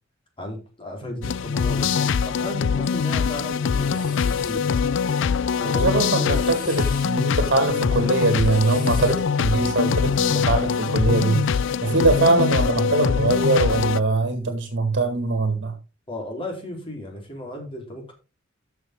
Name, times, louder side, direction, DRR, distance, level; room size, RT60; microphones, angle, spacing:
voice 1, 0.4-4.8 5.6-6.5 16.1-18.1, left 1 dB, 25° left, 0 dB, 4.0 m, -35 dB
sound 1, 1.2-14.0, left 6 dB, 65° left, 0.4 m, -23 dB
sound 2, 3.4-4.7 6.0-7.1 8.2-9.3, left 5 dB, 45° left, 2.8 m, -41 dB
voice 2, 5.6-15.7, right 3 dB, 55° right, 7 dB, 1.9 m, -22 dB
13.5 x 6.1 x 3.8 m, 0.30 s
head